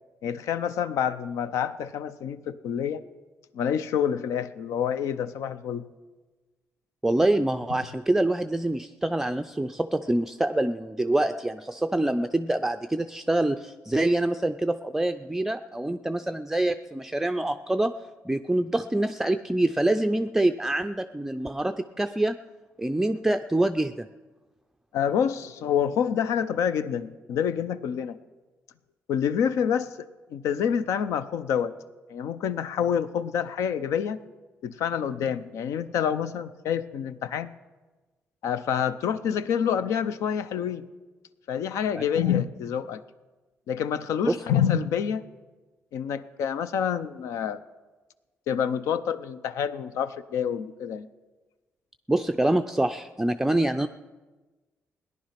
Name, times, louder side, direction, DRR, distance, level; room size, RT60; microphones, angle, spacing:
voice 1, 0.2-3.0 3.5-5.8 24.9-28.2 29.1-31.8 32.1-34.2 34.6-37.5 38.4-40.8 41.5-43.0 43.7-45.2 45.9-47.6 48.5-51.1, left 8 dB, 90° left, 14 dB, 0.7 m, -27 dB
voice 2, 7.0-17.9 18.3-22.4 22.8-24.1 41.9-42.0 44.3-44.4 52.1-53.9, right 1 dB, 5° right, 8 dB, 0.4 m, -25 dB
17.5 x 10.5 x 5.8 m, 1.2 s
cardioid pair, 135°, 5 cm